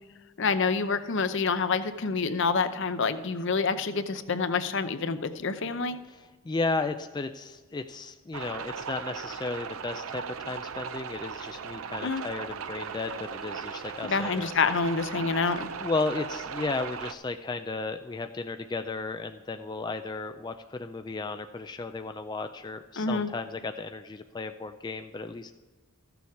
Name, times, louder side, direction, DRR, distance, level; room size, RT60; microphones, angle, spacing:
voice 1, 0.4-6.0 12.0-12.2 14.0-15.7 23.0-23.3, left 4 dB, 55° left, 11 dB, 0.7 m, -27 dB
voice 2, 6.1-14.5 15.1-15.3 15.8-25.5, left 3 dB, 20° left, 7 dB, 0.3 m, -34 dB
sound 1, 8.3-17.1, right 6 dB, 70° right, 0.5 m, -38 dB
14.5 x 7.0 x 4.7 m, 1.4 s
head